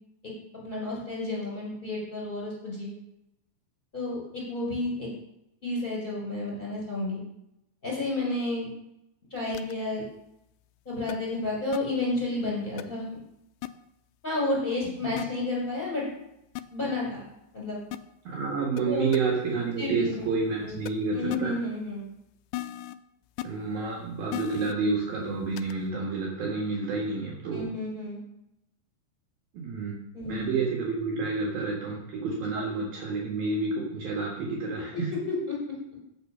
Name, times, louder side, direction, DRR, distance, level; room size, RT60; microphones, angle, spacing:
voice 1, 0.5-2.9 3.9-5.1 5.6-7.2 7.8-8.7 9.3-10.0 10.8-13.0 14.2-16.0 16.7-17.3 17.5-17.8 18.9-19.1 19.8-20.3 20.6-20.8 21.1-22.1 27.5-28.2 30.1-30.5 32.5-32.6 35.5-35.6, left 2 dB, 10° left, -4 dB, 4.2 m, -31 dB
sound 1, 9.5-9.7 11.1-11.2 11.7-11.8 12.8-12.9 13.6-13.7 15.2-15.3 16.6-16.7 17.9-18.0 18.8-18.9 19.1-19.2 20.9-21.0 21.3-21.4 22.5-22.9 23.4-23.5 24.3-24.7 25.6-25.7, left 16 dB, 85° left, 2.3 m, -34 dB
voice 2, 18.2-21.6 23.4-27.7 29.5-30.0 30.3-35.1, right 4 dB, 60° right, -2 dB, 3.2 m, -29 dB
15.5 x 6.0 x 5.6 m, 0.84 s
omnidirectional pair, 5.2 m